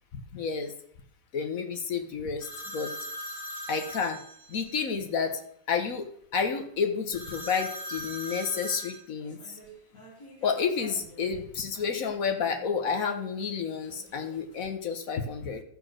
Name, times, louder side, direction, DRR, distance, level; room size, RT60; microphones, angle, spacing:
voice 1, 0.3-0.7 1.3-2.9 3.7-4.2 4.5-5.4 5.7-6.1 6.3-9.6 10.4-15.6, left 6 dB, 50° left, 5 dB, 1.3 m, -30 dB
sound 1, 2.4-4.8 7.1-11.4 11.7-12.9 13.7-14.6, equal, 15° left, 2.9 m, -42 dB
13.5 x 5.1 x 6.3 m, 0.66 s
omnidirectional pair, 2.2 m